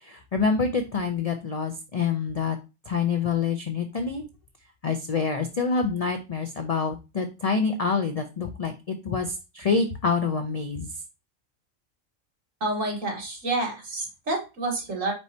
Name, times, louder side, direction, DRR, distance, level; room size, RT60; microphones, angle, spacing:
voice 1, 0.0-2.6 2.9-4.2 4.8-10.9, left 5 dB, 75° left, 5 dB, 0.3 m, -26 dB
voice 2, 12.6-15.1, right 2 dB, 85° right, 0 dB, 1.9 m, -29 dB
4.6 x 4.2 x 2.6 m, 0.28 s
omnidirectional pair, 1.3 m